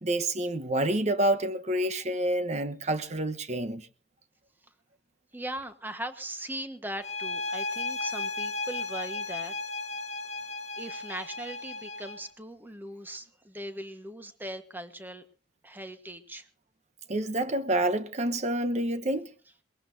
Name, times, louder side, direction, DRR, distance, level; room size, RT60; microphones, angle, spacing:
voice 1, 0.0-3.9 17.1-19.3, right 1 dB, 40° right, 1.1 m, -28 dB
voice 2, 5.3-9.5 10.8-15.2 15.6-16.5, right 1 dB, 10° right, 1.3 m, -39 dB
sound 1, 7.0-12.3, left 3 dB, 40° left, 1.2 m, -35 dB
23.0 x 20.5 x 2.7 m
head